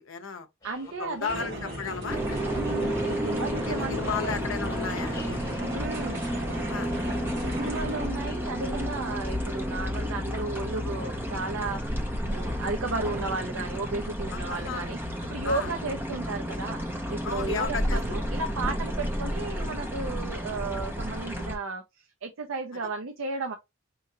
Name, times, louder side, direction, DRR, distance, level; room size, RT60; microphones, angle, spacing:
voice 1, 0.0-0.5 1.0-2.5 3.7-5.6 6.7-6.9 14.3-14.9 15.4-15.7 17.2-18.2, left 6 dB, 70° left, 0.6 m, -34 dB
sound 1, 0.6-8.4, left 1 dB, 20° left, 1.4 m, -50 dB
voice 2, 0.6-1.5 2.6-4.4 5.7-6.3 7.6-12.0 12.2-16.8 17.1-23.5, right 3 dB, 80° right, 0.6 m, -34 dB
sound 2, 1.3-8.1, right 1 dB, 55° right, 1.8 m, -37 dB
sound 3, 2.1-21.6, equal, 10° right, 0.6 m, -31 dB
4.8 x 3.0 x 2.6 m
head